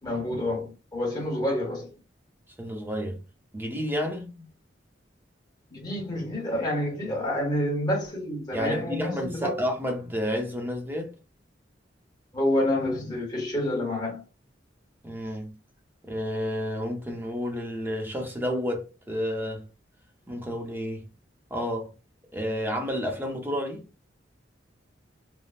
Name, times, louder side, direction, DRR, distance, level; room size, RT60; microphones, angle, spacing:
voice 1, 0.0-1.9 5.7-9.6 12.3-14.2, left 1 dB, 25° left, 1.1 m, -28 dB
voice 2, 2.6-3.2 3.5-4.5 8.5-11.1 15.0-15.5 16.0-19.7 20.3-21.1 21.5-21.9 22.3-23.8, equal, 10° right, 0.6 m, -30 dB
3.3 x 2.1 x 2.4 m
head